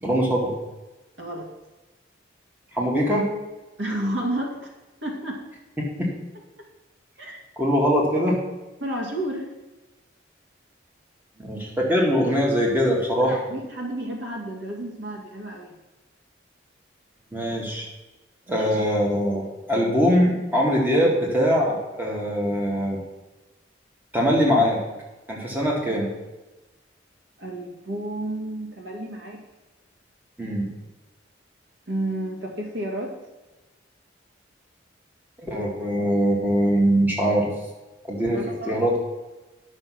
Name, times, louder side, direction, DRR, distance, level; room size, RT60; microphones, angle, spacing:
voice 1, 0.0-0.5 2.7-3.3 6.0-6.1 7.6-8.4 11.4-13.4 17.3-17.8 18.5-23.0 24.1-24.8 25.3-26.1 30.4-30.7 35.4-37.5 38.1-39.0, equal, 10° right, -3 dB, 2.2 m, -22 dB
voice 2, 1.2-1.5 3.8-4.7 5.0-5.4 7.2-7.4 8.8-9.5 13.2-15.7 18.5-18.8 27.4-29.4 31.9-33.1 38.3-38.8, right 1 dB, 75° right, 0 dB, 2.2 m, -31 dB
10.5 x 6.4 x 6.0 m, 1.1 s
head